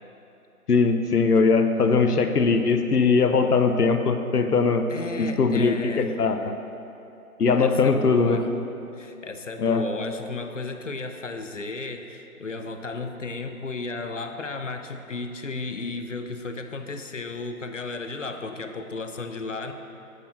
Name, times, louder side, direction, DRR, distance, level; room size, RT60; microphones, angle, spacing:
voice 1, 0.7-4.9 5.2-6.5 7.4-8.4 9.6-9.8, left 4 dB, 80° left, 7 dB, 0.9 m, -20 dB
voice 2, 4.9-6.3 7.6-8.5 8.9-19.7, left 3 dB, 55° left, 7 dB, 0.7 m, -34 dB
9.7 x 4.5 x 6.0 m, 2.7 s
figure-of-eight pair, 170°, 45 cm